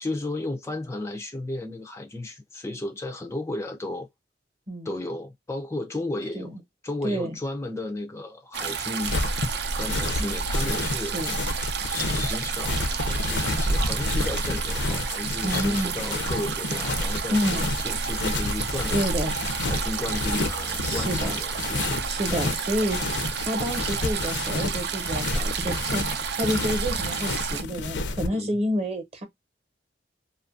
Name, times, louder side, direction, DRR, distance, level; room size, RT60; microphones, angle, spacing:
voice 1, 0.0-4.1 4.8-6.5 6.8-9.1 9.8-11.1 11.9-17.4 17.8-19.0 19.6-22.1 28.3-28.5, left 2 dB, 15° left, 0.3 m, -34 dB
voice 2, 7.0-7.4 10.2-10.3 10.9-11.4 15.4-15.9 17.3-17.7 18.9-19.3 20.8-21.4 22.0-23.1 23.4-29.3, equal, 35° right, 0.8 m, -29 dB
sound 1, 8.5-27.6, right 6 dB, 65° right, 0.5 m, -31 dB
sound 2, 9.0-28.3, left 2 dB, 80° left, 0.5 m, -30 dB
2.5 x 2.3 x 2.4 m
head